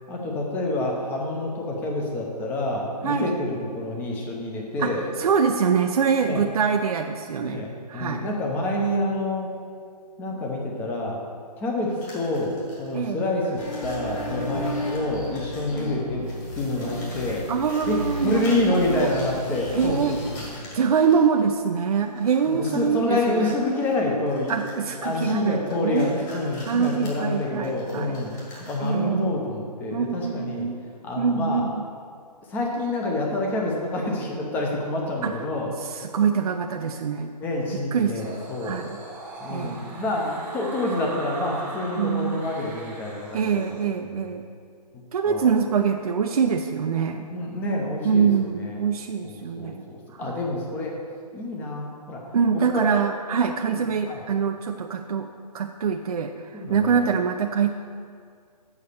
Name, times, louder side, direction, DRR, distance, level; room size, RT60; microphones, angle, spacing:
voice 1, 0.1-5.1 6.2-6.4 7.4-9.5 10.2-11.2 11.6-16.2 16.6-17.5 17.9-20.7 22.5-30.7 31.0-31.7 32.5-35.7 37.4-38.8 39.4-44.3 44.9-45.5 47.3-48.8 49.2-50.9 51.3-52.2 52.5-52.9 53.7-53.8 54.1-54.3 56.5-57.1, left 2 dB, 10° left, -1 dB, 0.7 m, -28 dB
voice 2, 3.0-3.3 4.8-4.9 5.2-8.3 12.9-13.2 17.5-19.1 19.7-20.2 20.7-23.5 24.5-26.1 26.7-28.2 28.8-29.3 29.9-30.8 31.2-31.8 35.2-35.3 35.9-37.3 37.9-38.2 38.6-39.0 39.5-39.8 42.0-42.4 43.3-44.5 45.1-47.3 48.0-49.9 50.2-50.3 52.3-55.3 55.5-57.7, right 6 dB, 60° right, 4 dB, 0.5 m, -24 dB
sound 1, 11.8-13.1 13.4-15.9 16.3-21.4 22.0-22.8 23.1-29.0, left 1 dB, 30° left, 1.9 m, -47 dB
sound 2, 13.6-20.5, left 1 dB, 50° left, 2.4 m, -33 dB
sound 3, 38.2-43.8, right 2 dB, 10° right, 1.0 m, -40 dB
7.2 x 5.5 x 6.5 m, 2.2 s
hypercardioid pair, 155°, 21 cm